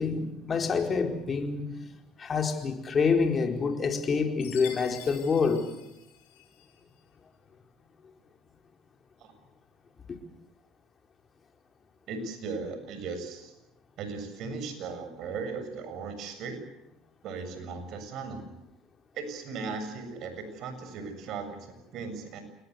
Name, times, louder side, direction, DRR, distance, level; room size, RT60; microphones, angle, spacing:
voice 1, 0.0-1.7 2.2-5.7 10.1-10.2, left 5 dB, 35° left, 4.4 m, -27 dB
Chime, 4.4-6.7, left 9 dB, 85° left, 4.5 m, -47 dB
voice 2, 12.1-13.5 14.0-16.6 17.2-18.5 19.2-22.4, right 4 dB, 60° right, 7.4 m, -37 dB
28.5 x 20.5 x 8.2 m
supercardioid pair, 80°, 0 cm